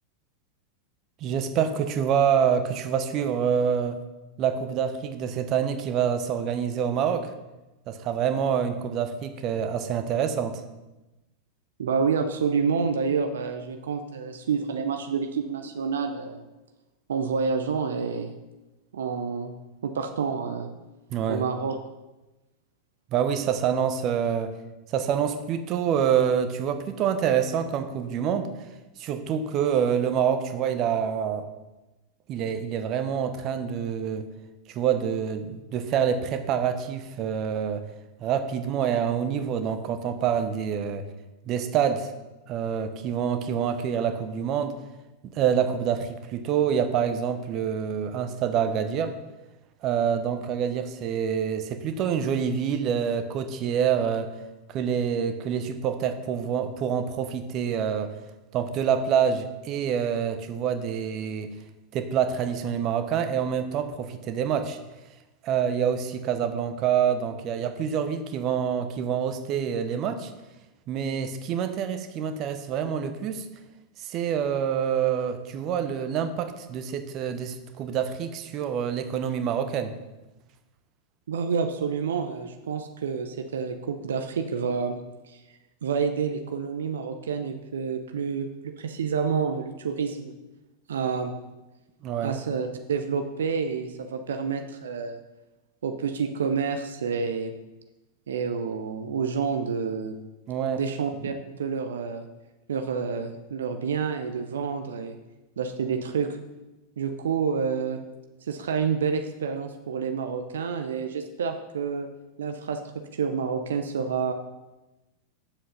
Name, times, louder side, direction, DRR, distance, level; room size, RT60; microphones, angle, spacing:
voice 1, 1.2-4.0 4.4-7.3 7.9-10.6 21.1-21.5 23.1-24.5 24.9-28.5 29.0-31.5 32.3-34.3 34.7-37.8 38.2-41.0 41.5-42.1 42.5-44.7 45.2-49.2 49.8-54.3 54.7-58.1 58.5-61.5 61.9-64.8 65.4-70.3 70.9-73.5 74.0-79.9 92.0-92.4 100.5-100.8 101.2-101.4, right 8 dB, 35° right, 8 dB, 0.9 m, -26 dB
voice 2, 11.8-16.4 17.1-18.3 18.9-19.5 19.8-20.7 21.3-21.8 81.3-85.0 85.3-85.4 85.8-88.5 88.8-90.4 90.9-91.3 92.2-95.2 95.8-97.5 98.3-100.2 100.8-102.3 102.7-105.2 105.6-106.4 107.0-108.0 108.4-112.1 112.4-112.8 113.1-114.3, right 6 dB, 65° right, 6 dB, 0.7 m, -28 dB
8.8 x 7.6 x 5.6 m, 1.1 s
figure-of-eight pair, 90°, 0 cm